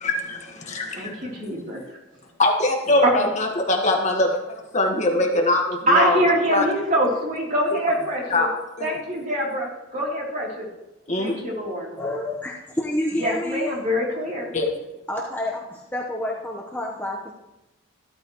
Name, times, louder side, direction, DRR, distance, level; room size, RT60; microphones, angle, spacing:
voice 1, 0.0-1.3 2.4-6.2 6.5-6.6 8.3-8.5 8.8-8.9 11.1-11.4 14.5-14.7, left 2 dB, 35° left, 1 dB, 1.6 m, -22 dB
voice 2, 0.9-1.8 3.0-3.1 5.9-8.4 8.8-10.7 11.2-11.9 13.2-14.5, equal, 40° right, -4 dB, 3.5 m, -24 dB
voice 3, 12.0-13.8 15.1-17.3, left 1 dB, 10° left, -3 dB, 1.1 m, -29 dB
14.5 x 12.5 x 3.1 m, 0.98 s
head